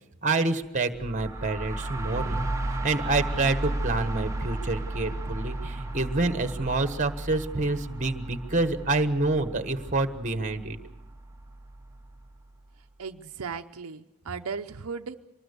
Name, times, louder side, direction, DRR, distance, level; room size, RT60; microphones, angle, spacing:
voice 1, 0.2-10.8, right 3 dB, 35° right, 9 dB, 1.3 m, -27 dB
sound 1, 0.9-12.6, right 2 dB, 15° right, 1.0 m, -34 dB
voice 2, 13.0-15.1, right 5 dB, 75° right, 6 dB, 0.7 m, -36 dB
24.5 x 20.0 x 6.9 m, 0.91 s
head